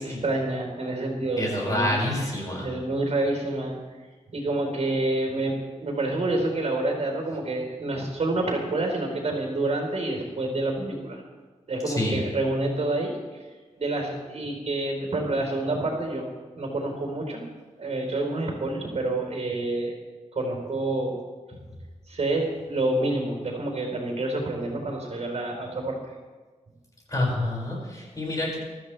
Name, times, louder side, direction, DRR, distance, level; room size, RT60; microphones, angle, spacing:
voice 1, 0.0-2.0 2.3-3.8 4.3-11.2 11.7-13.1 13.8-16.3 16.6-17.4 17.8-19.9 20.3-21.2 22.1-26.0, right 2 dB, 55° right, 1 dB, 4.2 m, -28 dB
voice 2, 1.4-2.7 11.8-12.2 27.1-28.6, left 1 dB, 30° left, -3 dB, 6.0 m, -27 dB
24.0 x 14.0 x 3.4 m, 1.3 s
wide cardioid pair, 125°, 13 cm